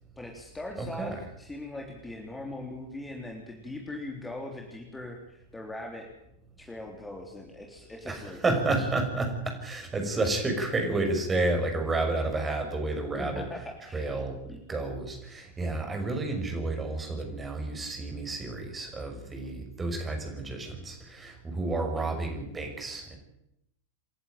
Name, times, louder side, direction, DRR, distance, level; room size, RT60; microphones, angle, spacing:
voice 1, 0.2-6.1 6.6-8.4 13.2-14.1 14.5-14.6, left 1 dB, 10° left, 1 dB, 3.5 m, -40 dB
voice 2, 0.8-1.2 8.1-13.5 13.9-14.4 14.7-23.2, right 2 dB, 15° right, 4 dB, 5.9 m, -30 dB
28.5 x 11.0 x 9.2 m, 0.80 s
figure-of-eight pair, 90°, 0 cm